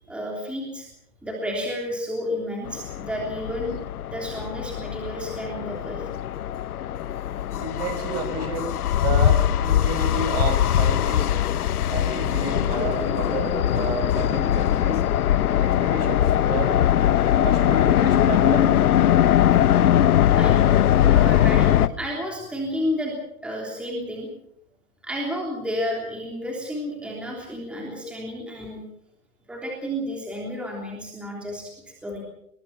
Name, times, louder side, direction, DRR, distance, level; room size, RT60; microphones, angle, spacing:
voice 1, 0.1-0.9 1.2-3.8 4.1-6.1 20.4-20.8 21.0-23.2 23.4-24.3 25.0-28.8 29.5-32.2, equal, ahead, -1 dB, 3.3 m, -31 dB
sound 1, 2.7-21.9, left 11 dB, 80° left, 1.2 m, -21 dB
voice 2, 7.6-11.3 11.9-15.0 15.6-16.8 17.3-18.8, right 4 dB, 40° right, 8 dB, 5.2 m, -31 dB
24.5 x 21.0 x 5.8 m, 0.74 s
hypercardioid pair, 170°, 44 cm